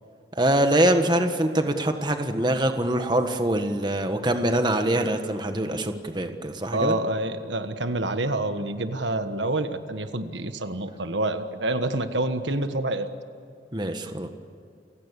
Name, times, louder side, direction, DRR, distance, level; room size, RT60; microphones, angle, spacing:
voice 1, 0.3-7.0 13.7-14.3, right 1 dB, 25° right, 7 dB, 1.5 m, -24 dB
voice 2, 6.7-13.1, right 2 dB, 85° right, 9 dB, 1.4 m, -27 dB
29.5 x 16.5 x 8.3 m, 2.5 s
head